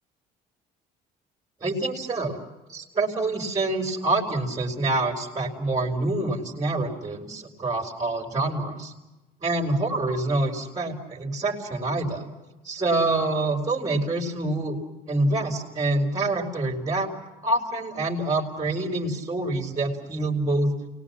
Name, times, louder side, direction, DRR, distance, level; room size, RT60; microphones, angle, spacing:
voice 1, 1.6-2.4 2.7-8.9 9.4-12.3 12.6-14.8 15.1-17.1 17.4-20.7, right 2 dB, 20° right, 0 dB, 4.0 m, -26 dB
29.0 x 20.0 x 7.2 m, 1.1 s
cardioid pair, 110°, 17 cm